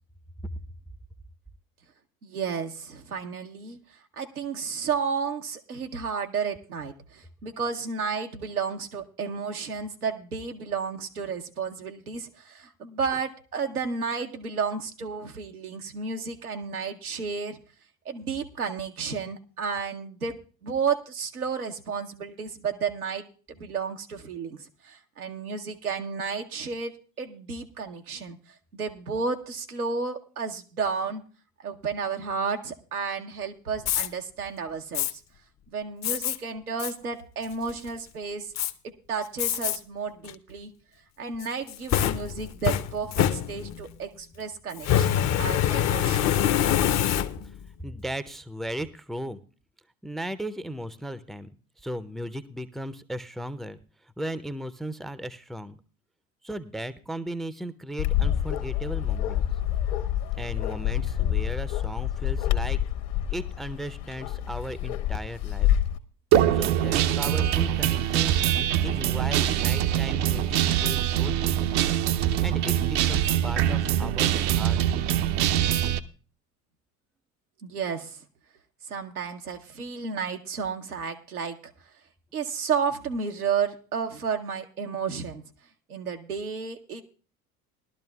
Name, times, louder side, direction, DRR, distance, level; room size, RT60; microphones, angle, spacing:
voice 1, 2.2-3.8 4.2-17.6 18.0-20.4 20.6-28.4 28.7-31.2 31.6-35.2 35.7-38.5 38.8-40.7 41.2-46.3 77.6-78.2 78.9-81.7 82.3-85.4 85.9-87.0, right 5 dB, 90° right, 3 dB, 0.9 m, -32 dB
Fire, 33.8-34.1 34.9-35.1 36.0-36.4 36.8-36.9 37.4-37.9 38.6-38.7 39.4-39.8 40.2-40.3 41.4-43.9 44.8-47.6, left 10 dB, 40° left, 0.7 m, -25 dB
voice 2, 47.1-49.4 50.0-51.5 51.8-55.8 56.4-59.4 60.3-62.8 63.3-65.7 66.5-68.4 68.8-71.6 72.4-74.8, right 1 dB, ahead, 15 dB, 0.5 m, -36 dB
Bark, 58.0-66.0, left 11 dB, 60° left, 1.1 m, -27 dB
Guitar, 66.3-76.0, right 11 dB, 55° right, 0.6 m, -23 dB
19.5 x 12.0 x 2.3 m, 0.37 s
figure-of-eight pair, 65°, 43 cm